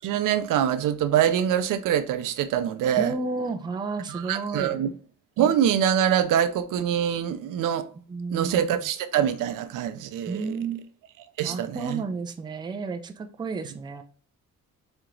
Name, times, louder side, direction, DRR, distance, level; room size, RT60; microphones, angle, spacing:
voice 1, 0.0-3.1 4.1-4.9 5.4-7.9 8.3-10.5 11.4-12.0, right 9 dB, 85° right, 0.6 m, -24 dB
voice 2, 3.0-4.9 8.1-8.6 10.3-10.9 11.4-14.0, right 4 dB, 15° right, 0.4 m, -32 dB
4.4 x 2.9 x 3.7 m
cardioid pair, 160°, 31 cm